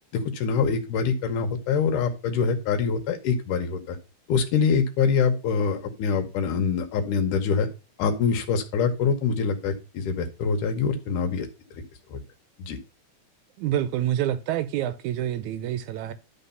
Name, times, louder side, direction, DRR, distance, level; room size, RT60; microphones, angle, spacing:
voice 1, 0.1-4.0 4.3-7.7 8.0-11.5 12.1-12.2 12.6-12.8, left 5 dB, 80° left, 2.5 m, -24 dB
voice 2, 13.6-16.1, right 11 dB, 80° right, 1.9 m, -27 dB
11.0 x 3.8 x 5.5 m
omnidirectional pair, 3.7 m